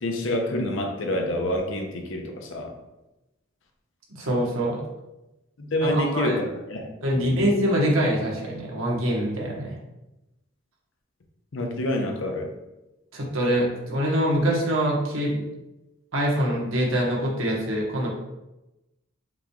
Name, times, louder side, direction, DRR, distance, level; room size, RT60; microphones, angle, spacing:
voice 1, 0.0-2.7 5.6-7.4 11.5-12.5, left 1 dB, 65° left, 3 dB, 0.7 m, -27 dB
voice 2, 4.2-4.8 5.8-6.4 7.0-9.7 13.1-15.4 16.1-18.1, equal, 85° right, -3 dB, 1.2 m, -24 dB
5.8 x 3.1 x 2.3 m, 0.98 s
head